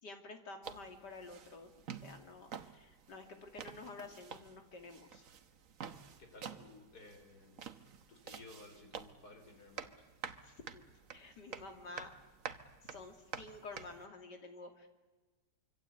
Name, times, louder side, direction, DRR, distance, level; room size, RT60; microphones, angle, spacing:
voice 1, 0.0-1.7 2.0-5.3 10.4-10.8 11.1-12.1 12.8-14.9, left 3 dB, 90° left, 5 dB, 3.2 m, -50 dB
sound 1, 0.6-14.1, right 7 dB, 55° right, 1.4 m, -50 dB
voice 2, 6.2-7.7 8.1-10.0, left 2 dB, 65° left, 5 dB, 4.6 m, -56 dB
25.5 x 25.0 x 8.3 m, 1.2 s
omnidirectional pair, 1.8 m